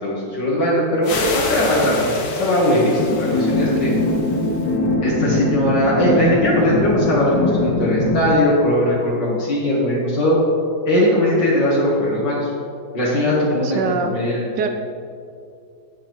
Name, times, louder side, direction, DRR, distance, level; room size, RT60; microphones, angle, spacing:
voice 1, 0.0-3.9 5.0-10.4 10.9-12.5 12.9-14.7, left 1 dB, 80° left, -6 dB, 2.3 m, -19 dB
sound 1, 1.0-4.7, left 4 dB, 65° left, 1.4 m, -29 dB
sound 2, 3.0-8.3, left 1 dB, 30° left, 0.7 m, -21 dB
voice 2, 13.6-14.1 14.6-14.7, right 6 dB, 75° right, 5 dB, 1.2 m, -23 dB
13.0 x 8.9 x 3.1 m, 2.5 s
omnidirectional pair, 1.9 m